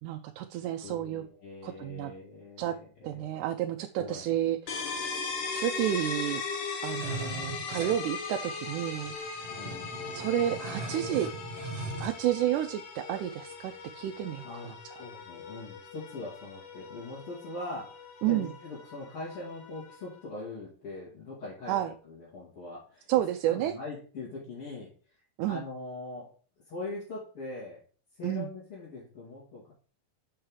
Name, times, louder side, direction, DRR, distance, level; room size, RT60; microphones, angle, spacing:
voice 1, 0.0-1.2 1.6-2.1 2.6-2.8 3.0-4.8 5.5-6.4 6.8-9.1 10.1-11.3 12.0-14.7 18.2-18.5 21.7-21.9 23.1-23.7 25.4-25.6 28.2-28.5, right 12 dB, 85° right, 4 dB, 2.1 m, -30 dB
voice 2, 0.8-3.3 3.9-4.2 9.6-10.0 14.4-23.1 23.4-24.9 25.5-26.3 26.7-27.8 28.2-29.7, left 2 dB, 50° left, -8 dB, 3.3 m, -42 dB
sound 1, 4.7-20.2, left 5 dB, 85° left, 3.0 m, -39 dB
sound 2, 7.0-8.0 8.7-8.8 9.0-12.1, right 3 dB, 50° right, 2.3 m, -39 dB
6.3 x 5.7 x 4.8 m, 0.40 s
omnidirectional pair, 3.5 m